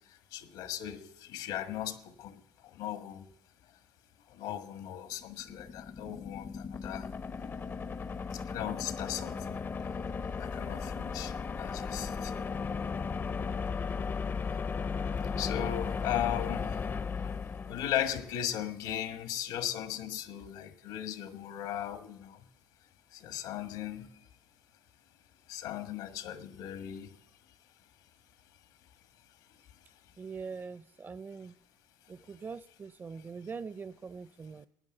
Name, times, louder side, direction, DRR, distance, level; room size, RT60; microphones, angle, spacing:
voice 1, 0.3-2.4 2.7-3.2 4.3-7.1 8.3-9.6 10.4-12.3 15.4-16.8 17.2-17.3 17.7-22.4 23.1-24.1 25.5-27.1, left 11 dB, 85° left, 10 dB, 1.5 m, -37 dB
sound 1, 5.1-18.3, left 5 dB, 30° left, 0.5 m, -36 dB
voice 2, 30.2-31.5 32.1-34.7, right 5 dB, 30° right, 18 dB, 0.5 m, -43 dB
16.0 x 9.5 x 7.8 m, 0.76 s
cardioid pair, 110°, 7 cm